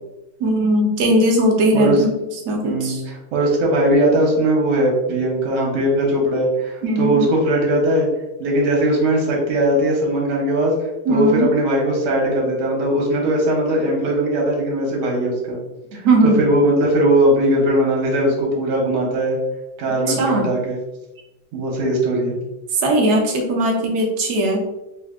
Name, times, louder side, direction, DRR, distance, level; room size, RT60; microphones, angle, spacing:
voice 1, 0.4-2.1 2.4-3.0 6.8-7.3 11.1-11.5 16.0-16.4 20.1-20.5 22.8-24.6, right 1 dB, 65° right, 1 dB, 1.0 m, -18 dB
voice 2, 1.7-2.0 2.6-8.1 8.4-15.6 15.9-19.4 19.8-20.8 21.5-22.4, right 1 dB, 90° right, -1 dB, 1.7 m, -19 dB
4.4 x 2.4 x 2.3 m, 0.98 s
omnidirectional pair, 2.3 m